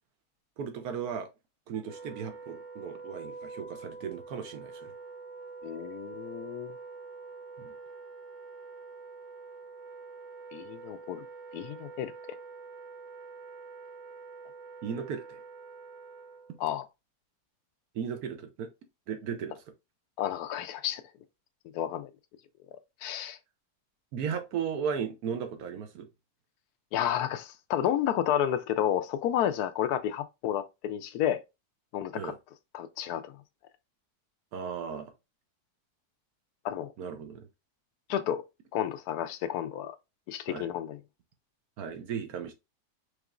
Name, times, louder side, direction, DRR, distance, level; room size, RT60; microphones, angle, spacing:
voice 1, 0.6-1.3 1.7-4.9 7.6-7.7 14.8-15.4 17.9-18.7 19.1-19.6 24.1-26.1 32.1-32.4 34.5-35.1 37.0-37.5 40.5-40.7 41.8-42.5, right 7 dB, 75° right, 1.2 m, -36 dB
Wind instrument woodwind instrument, 1.7-16.6, right 4 dB, 55° right, 1.0 m, -46 dB
voice 2, 5.6-6.7 10.5-11.2 11.5-12.1 16.6-16.8 20.2-21.0 21.7-22.1 23.0-23.4 26.9-31.4 31.9-32.3 32.7-33.3 36.6-36.9 38.1-38.4 38.7-39.9 40.3-41.0, left 10 dB, 85° left, 1.1 m, -31 dB
4.9 x 3.0 x 2.4 m
omnidirectional pair, 1.6 m